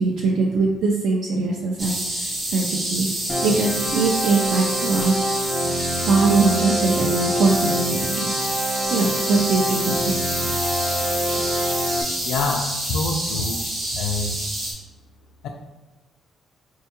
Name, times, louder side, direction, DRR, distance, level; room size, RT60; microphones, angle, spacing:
voice 1, 0.0-5.2 6.0-8.3 8.9-10.2, right 3 dB, 65° right, -1 dB, 0.4 m, -22 dB
sound 1, 1.8-14.7, right 1 dB, 30° right, 0.8 m, -28 dB
sound 2, 3.3-12.0, equal, 10° left, 0.3 m, -26 dB
voice 2, 12.2-13.6 13.9-14.4 15.4-15.5, left 3 dB, 90° left, 1 dB, 0.3 m, -26 dB
4.4 x 2.2 x 2.8 m, 1.1 s
cardioid pair, 175°, 0 cm